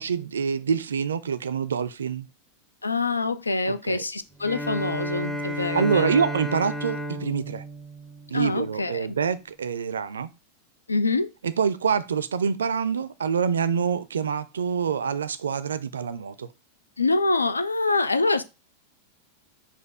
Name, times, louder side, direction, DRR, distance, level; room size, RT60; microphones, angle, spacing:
voice 1, 0.0-2.3 3.7-4.0 5.7-7.6 8.3-10.3 11.4-16.5, right 6 dB, 70° right, 0.4 m, -26 dB
voice 2, 2.8-6.2 8.3-9.1 10.9-11.3 17.0-18.4, left 3 dB, 80° left, 0.4 m, -25 dB
Bowed string instrument, 4.4-8.8, equal, 5° left, 0.6 m, -32 dB
4.2 x 2.5 x 4.8 m
figure-of-eight pair, 90°, 0 cm